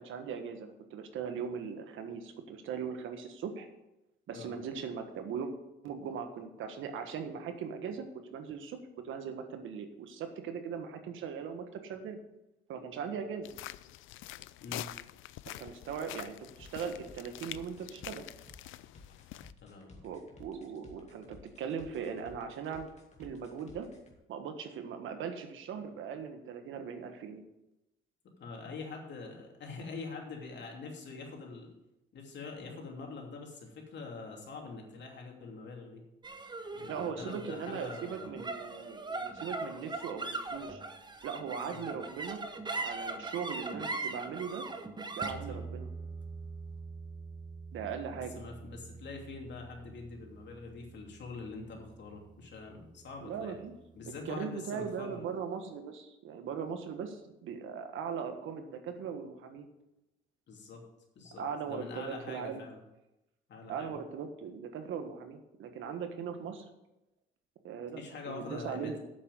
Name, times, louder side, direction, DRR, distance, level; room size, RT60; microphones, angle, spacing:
voice 1, 0.0-3.7 4.3-5.5 5.8-8.8 9.0-12.2 12.7-13.5 15.5-18.2 20.0-22.9 23.2-23.9 24.3-27.4 36.9-40.8 41.2-42.4 42.7-44.6 45.1-45.9 47.7-48.4 53.2-53.7 54.2-59.7 61.4-62.6 63.7-66.7 67.6-68.0 68.2-69.0, right 6 dB, 80° right, 7 dB, 1.5 m, -39 dB
sound 1, 13.4-19.5, left 15 dB, 85° left, 0.4 m, -46 dB
sound 2, 16.6-24.1, left 3 dB, 35° left, 2.3 m, -55 dB
voice 2, 19.6-20.0 28.4-31.7 32.1-36.0 36.7-38.4 41.7-41.9 45.5-45.6 48.3-53.6 54.0-55.3 60.5-60.8 61.1-62.8 63.5-63.9 68.0-69.0, left 4 dB, 65° left, 1 dB, 3.0 m, -44 dB
sound 3, 36.2-52.8, right 3 dB, 20° right, 1.1 m, -41 dB
8.3 x 7.3 x 7.8 m, 0.92 s
cardioid pair, 90°, 20 cm